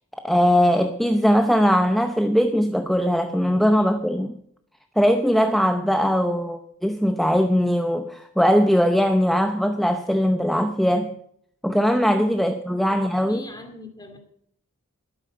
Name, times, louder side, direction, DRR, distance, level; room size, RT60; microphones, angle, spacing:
voice 1, 0.2-4.4 5.0-11.1 11.6-13.4, equal, ahead, 0.7 m, -20 dB
voice 2, 12.9-14.2, left 2 dB, 20° left, 2.5 m, -42 dB
12.5 x 12.5 x 5.5 m
head